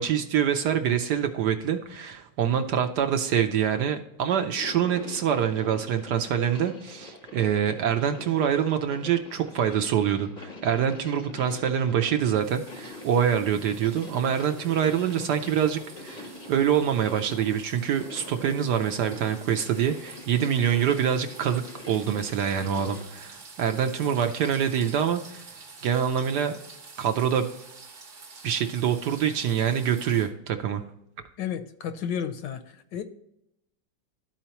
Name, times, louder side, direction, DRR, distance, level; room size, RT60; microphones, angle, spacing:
voice 1, 0.0-25.4 25.8-26.6 27.0-27.5 28.4-30.8, right 8 dB, 70° right, 6 dB, 1.1 m, -25 dB
sound 1, 4.4-23.1, left 3 dB, 40° left, 0.6 m, -45 dB
sound 2, 12.3-30.3, right 4 dB, 45° right, 1.2 m, -48 dB
voice 2, 31.4-32.6 32.9-33.0, left 8 dB, 70° left, 9 dB, 1.2 m, -31 dB
13.0 x 4.4 x 2.9 m, 0.79 s
omnidirectional pair, 2.1 m